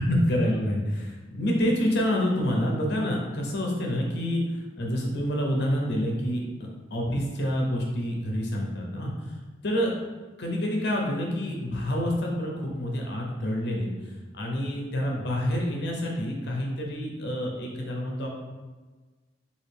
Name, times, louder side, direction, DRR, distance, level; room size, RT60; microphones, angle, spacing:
voice 1, 0.0-4.4 4.8-9.1 9.6-9.9 10.4-13.9 14.3-18.3, equal, 60° left, -1 dB, 0.7 m, -27 dB
3.1 x 2.5 x 3.4 m, 1.3 s
head